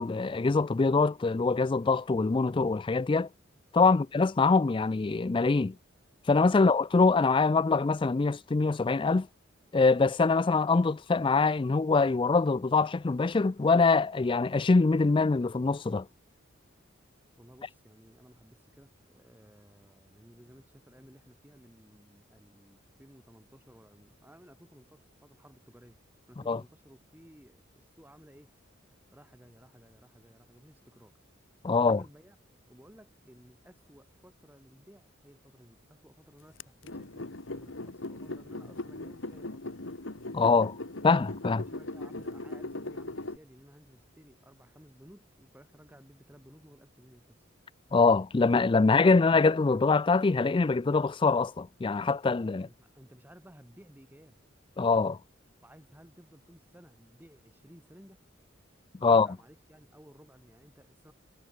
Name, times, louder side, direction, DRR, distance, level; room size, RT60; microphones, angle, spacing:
voice 1, 0.0-3.3 3.7-5.7 6.3-9.3 9.7-16.1 26.5-26.6 31.6-32.0 40.3-40.7 41.0-41.6 47.9-52.7 54.8-55.2 59.0-59.3, left 4 dB, 25° left, 0.4 m, -24 dB
voice 2, 17.4-26.0 26.3-28.5 29.1-31.1 31.7-32.4 32.7-39.8 41.5-47.4 52.4-54.4 55.6-58.2 59.0-61.1, equal, 10° right, 4.1 m, -56 dB
sound 1, 36.6-43.4, left 2 dB, 70° left, 2.0 m, -39 dB
head